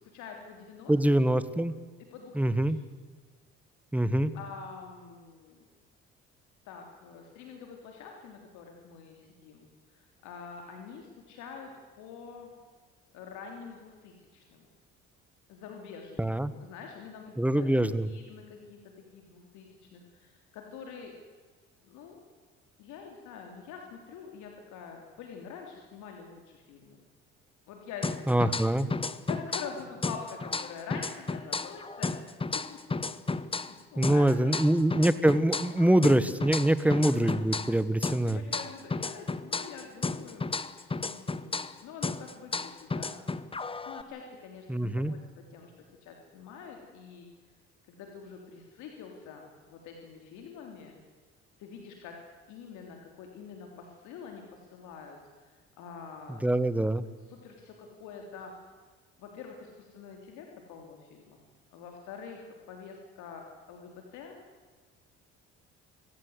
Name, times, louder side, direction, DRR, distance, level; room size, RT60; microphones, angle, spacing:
voice 1, 0.1-0.9 2.1-2.5 4.3-5.7 6.6-9.6 9.9-11.7 12.0-12.5 13.1-14.7 15.5-16.3 16.6-17.7 18.0-21.1 21.8-22.2 22.8-27.0 27.7-28.4 29.2-32.1 33.4-34.6 38.0-40.4 40.9-43.2 43.8-45.2 45.5-45.7 46.0-47.3 47.9-51.0 51.6-52.1 52.5-56.5 57.3-58.5 59.2-61.4 61.7-64.4, left 6 dB, 80° left, 2 dB, 3.2 m, -46 dB
voice 2, 0.9-1.7 2.3-2.8 3.9-4.3 16.2-16.5 17.4-18.1 28.3-28.9 34.0-38.4 44.7-45.1 56.4-57.0, right 1 dB, 5° right, 14 dB, 1.4 m, -24 dB
sound 1, 28.0-29.8 30.0-33.8 34.0-37.8 38.0-41.8 42.0-44.0, left 3 dB, 20° left, 1.0 m, -33 dB
25.0 x 15.5 x 8.1 m, 1.5 s
supercardioid pair, 80°, 29 cm